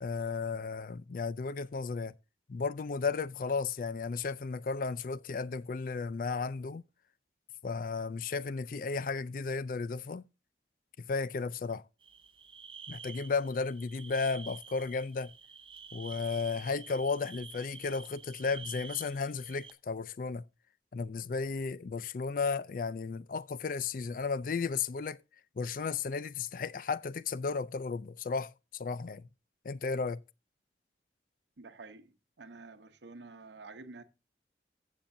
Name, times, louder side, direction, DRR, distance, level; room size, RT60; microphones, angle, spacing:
voice 1, 0.0-2.1 2.5-6.8 7.6-10.2 11.0-11.8 12.9-15.3 15.9-20.4 20.9-25.2 25.6-29.3 29.6-30.2, left 4 dB, 50° left, 0.4 m, -34 dB
sound 1, 12.0-19.7, right 6 dB, 30° right, 0.6 m, -49 dB
voice 2, 31.6-34.0, right 3 dB, 80° right, 0.9 m, -49 dB
14.5 x 7.2 x 2.6 m
head